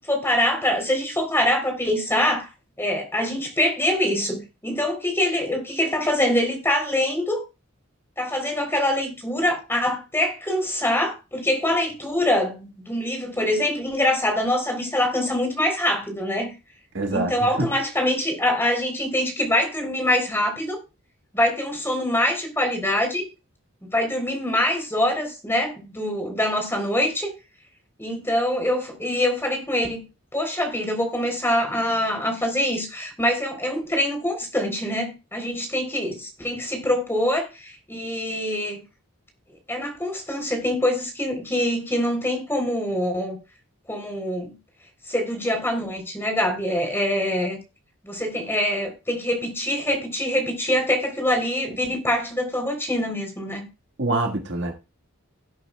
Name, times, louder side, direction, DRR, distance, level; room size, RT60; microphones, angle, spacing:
voice 1, 0.1-2.5 2.8-7.4 8.2-16.5 17.1-20.8 21.3-23.2 23.8-27.3 28.0-30.0 30.3-38.8 39.7-43.4 43.9-44.5 45.1-47.6 48.0-53.7, left 1 dB, 10° left, 3.6 m, -24 dB
voice 2, 16.9-17.7 54.0-54.7, right 2 dB, 55° right, 1.7 m, -25 dB
17.5 x 8.7 x 2.3 m
head